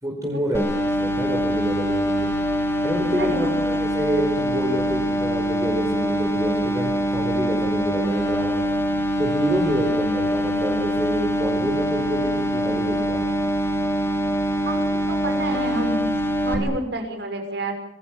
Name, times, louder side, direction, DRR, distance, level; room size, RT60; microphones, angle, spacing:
voice 1, 0.0-2.3 2.8-8.6 9.2-13.2, equal, 20° right, -1 dB, 4.8 m, -27 dB
sound 1, 0.5-16.6, equal, 15° left, 4.1 m, -24 dB
voice 2, 3.0-3.4 14.6-16.1 16.4-17.7, right 1 dB, 65° right, 5 dB, 6.5 m, -29 dB
26.0 x 21.5 x 7.5 m, 0.72 s
head